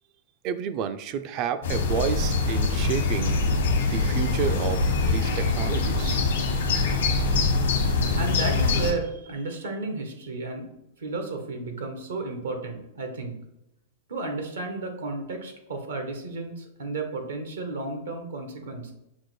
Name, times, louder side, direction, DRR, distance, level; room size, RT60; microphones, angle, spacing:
voice 1, 0.4-3.4 3.8-6.2, right 8 dB, 45° right, 11 dB, 0.4 m, -30 dB
sound 1, 1.6-8.9, left 3 dB, 75° left, 0.9 m, -24 dB
voice 2, 8.2-10.7 11.0-13.4 14.1-18.9, right 3 dB, 80° right, 4 dB, 0.9 m, -33 dB
6.0 x 2.1 x 3.1 m, 0.83 s
hypercardioid pair, 105°, 0 cm